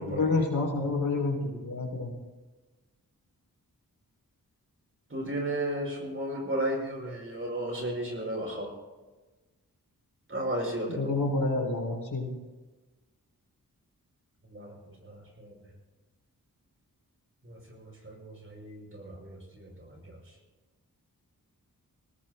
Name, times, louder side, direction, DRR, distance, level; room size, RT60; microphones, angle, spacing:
voice 1, 0.0-2.1 10.9-12.3, left 3 dB, 80° left, 0 dB, 3.9 m, -28 dB
voice 2, 5.1-8.7 10.3-11.1 14.5-15.7 17.4-20.2, right 1 dB, 35° right, -1 dB, 5.6 m, -34 dB
24.0 x 18.5 x 2.3 m, 1.2 s
wide cardioid pair, 100°, 36 cm